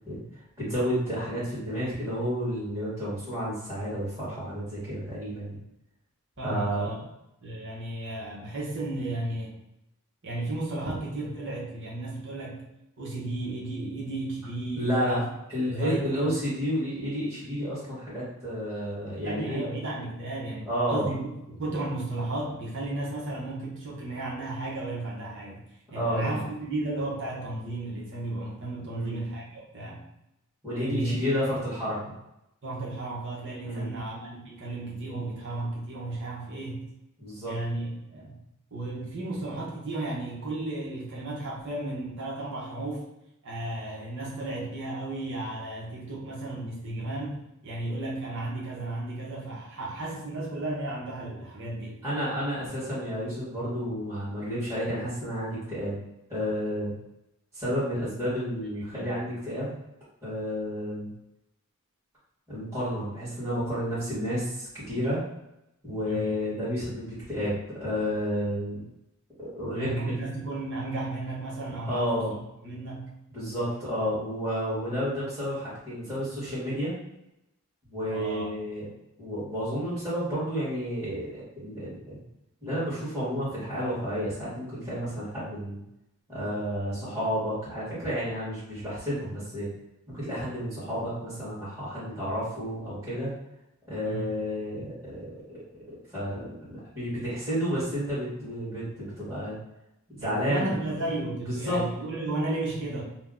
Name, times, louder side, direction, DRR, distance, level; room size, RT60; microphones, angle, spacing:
voice 1, 0.6-5.6 6.4-6.9 14.7-15.2 15.5-19.6 20.7-21.1 25.9-26.4 28.8-29.1 30.6-32.0 33.6-33.9 37.2-37.5 52.0-56.0 56.3-56.9 57.5-59.8 60.2-61.1 62.5-65.2 65.8-68.8 69.4-70.1 71.8-72.3 73.3-76.9 77.9-78.8 79.2-82.2 82.6-85.8 86.3-89.7 90.1-93.3 93.9-95.6 95.9-99.5 100.1-100.7 101.5-101.8, equal, 15° right, -13 dB, 1.4 m, -31 dB
voice 2, 6.4-7.0 7.4-9.6 10.2-12.6 13.0-15.3 15.6-16.3 19.2-25.6 25.9-30.0 30.8-31.1 32.6-36.9 37.5-38.4 38.7-43.1 43.4-52.0 58.8-59.2 66.1-66.4 69.8-72.4 72.6-73.1 78.0-78.5 94.0-94.3 100.2-103.0, right 2 dB, 60° right, -4 dB, 1.0 m, -34 dB
2.7 x 2.2 x 3.6 m, 0.86 s
head